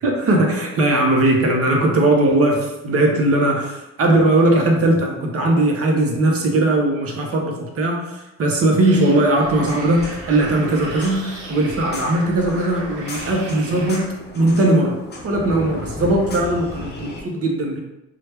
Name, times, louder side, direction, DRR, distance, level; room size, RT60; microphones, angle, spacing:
voice 1, 0.0-11.2 11.5-14.0 14.3-15.0 15.2-17.8, right 1 dB, 50° right, 1 dB, 0.8 m, -19 dB
sound 1, 8.8-14.0, right 2 dB, 85° right, 1.0 m, -36 dB
sound 2, 9.4-17.2, left 2 dB, 35° left, 0.7 m, -35 dB
3.0 x 2.4 x 3.2 m, 0.95 s
cardioid pair, 90°, 30 cm